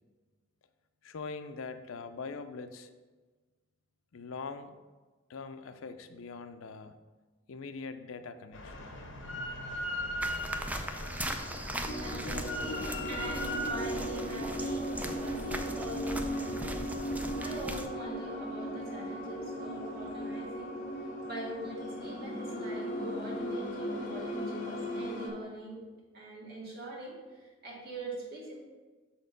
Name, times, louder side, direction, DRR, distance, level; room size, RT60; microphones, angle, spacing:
voice 1, 1.0-2.9 4.1-4.7 5.3-7.0 7.5-8.9, left 4 dB, 85° left, 10 dB, 0.5 m, -42 dB
Drill, 8.5-13.7, equal, 65° left, 1.2 m, -38 dB
sound 1, 10.2-17.9, right 1 dB, 10° right, 0.4 m, -39 dB
Choir Background Music, 11.9-25.3, equal, 40° left, 1.2 m, -37 dB
voice 2, 12.0-16.8 17.1-25.8 26.1-28.5, right 2 dB, 50° right, -6 dB, 2.3 m, -43 dB
6.5 x 4.3 x 5.1 m, 1.3 s
head